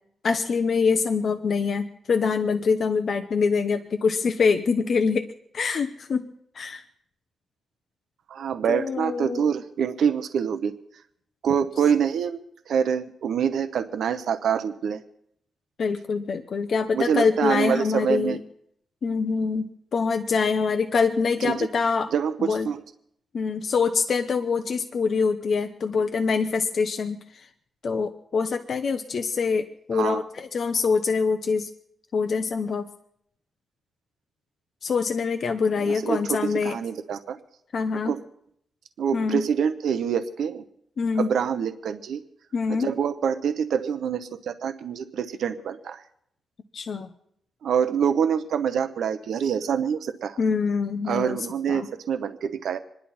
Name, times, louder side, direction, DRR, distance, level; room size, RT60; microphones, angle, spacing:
voice 1, 0.2-5.3 5.5-6.3 6.5-6.8 8.7-9.5 15.8-18.4 19.0-22.1 22.4-22.7 23.3-27.5 27.8-31.7 32.1-32.9 34.8-36.8 37.7-38.1 39.1-39.4 41.0-41.3 42.5-42.9 46.7-47.1 50.4-51.4 51.7-51.9, left 5 dB, 45° left, 6 dB, 0.8 m, -25 dB
voice 2, 8.3-10.7 11.4-12.4 12.7-15.0 16.9-18.4 21.5-21.7 22.1-22.8 29.9-30.2 35.8-37.4 38.0-38.2 39.0-40.6 41.2-42.2 42.7-46.0 47.6-50.4 51.1-52.8, right 7 dB, 70° right, 10 dB, 0.9 m, -26 dB
26.5 x 11.0 x 4.3 m, 0.72 s
wide cardioid pair, 180°, 0 cm